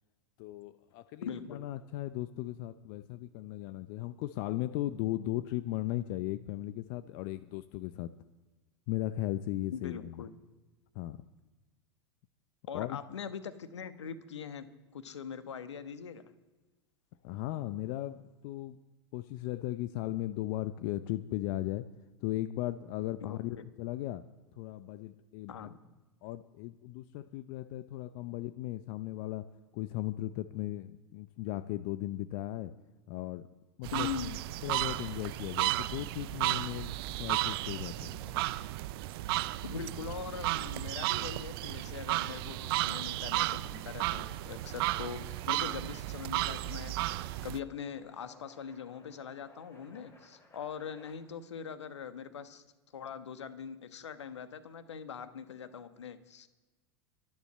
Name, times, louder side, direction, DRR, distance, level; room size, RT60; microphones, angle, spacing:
voice 1, 0.4-8.1 8.9-10.2 10.9-11.2 12.7-13.0 17.2-18.2 18.4-18.8 19.1-21.8 22.2-24.2 24.6-25.7 26.2-29.5 29.7-32.7 33.1-33.5 33.8-34.1 34.6-38.1, left 15 dB, 50° left, 14 dB, 0.7 m, -37 dB
voice 2, 1.2-1.6 9.7-10.3 12.7-14.7 14.9-16.2 23.2-23.6 25.5-25.8 33.9-34.4 39.6-52.6 52.9-56.5, left 7 dB, 80° left, 11 dB, 1.3 m, -42 dB
sound 1, 33.8-47.6, right 17 dB, 55° right, 0.6 m, -34 dB
sound 2, 34.2-51.1, left 2 dB, 20° left, 5.2 m, -60 dB
24.0 x 10.0 x 4.3 m, 1.2 s
hypercardioid pair, 95°, 15 cm